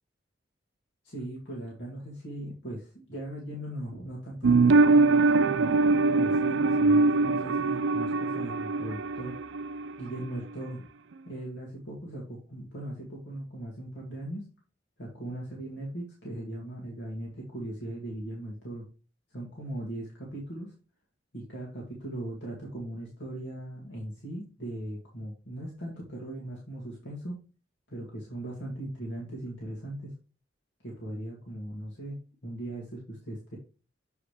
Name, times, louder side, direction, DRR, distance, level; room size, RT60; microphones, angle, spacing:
voice 1, 1.0-9.4 10.0-10.9 11.2-14.4 15.0-18.8 19.3-20.7 21.3-27.4 27.9-30.1 30.8-32.2 32.4-33.6, right 1 dB, 65° left, -3 dB, 2.3 m, -39 dB
sound 1, 4.4-10.0 10.2-10.3, right 3 dB, 85° right, 0.5 m, -23 dB
8.0 x 5.0 x 3.3 m, 0.34 s
head